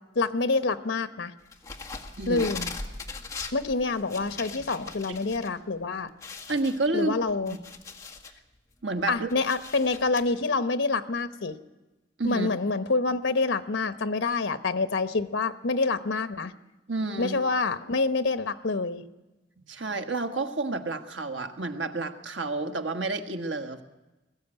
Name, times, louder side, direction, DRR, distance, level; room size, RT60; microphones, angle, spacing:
voice 1, 0.1-1.3 2.3-2.7 3.5-6.1 6.9-7.6 9.1-11.6 12.2-16.5 17.2-19.0, left 3 dB, 85° left, 10 dB, 0.9 m, -27 dB
sound 1, 1.5-5.5 5.8-5.9 6.2-8.4 8.8-10.2, left 4 dB, 20° left, 1.8 m, -40 dB
voice 2, 2.2-2.5 6.5-7.2 7.5-7.6 8.8-9.3 12.2-12.5 16.9-17.4 19.7-23.8, right 3 dB, 85° right, 7 dB, 1.6 m, -30 dB
21.5 x 14.5 x 9.0 m, 1.1 s
head